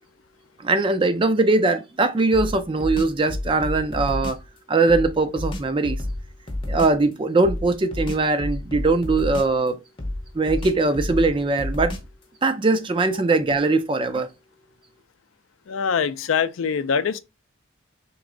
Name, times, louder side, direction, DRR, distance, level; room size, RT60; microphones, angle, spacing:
voice 1, 0.6-4.4 4.7-6.0 6.7-9.8 10.3-11.9 12.4-14.3, right 3 dB, 25° right, 0.4 m, -21 dB
sound 1, 2.3-4.5 4.9-7.0 7.4-9.7 10.0-12.2, left 1 dB, 25° left, 0.7 m, -30 dB
voice 2, 15.7-17.2, left 6 dB, 80° left, 0.4 m, -23 dB
3.4 x 3.0 x 3.7 m
head